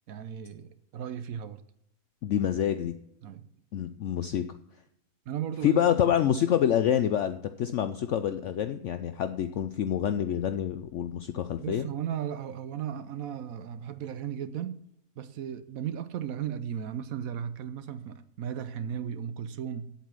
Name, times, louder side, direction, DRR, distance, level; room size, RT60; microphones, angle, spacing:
voice 1, 0.1-1.6 3.2-3.5 5.3-5.8 11.6-14.8 15.2-19.9, right 9 dB, 70° right, 1.1 m, -36 dB
voice 2, 2.2-2.9 3.7-4.4 5.6-11.9, left 10 dB, 65° left, 0.8 m, -27 dB
8.5 x 8.1 x 6.1 m
omnidirectional pair, 1.6 m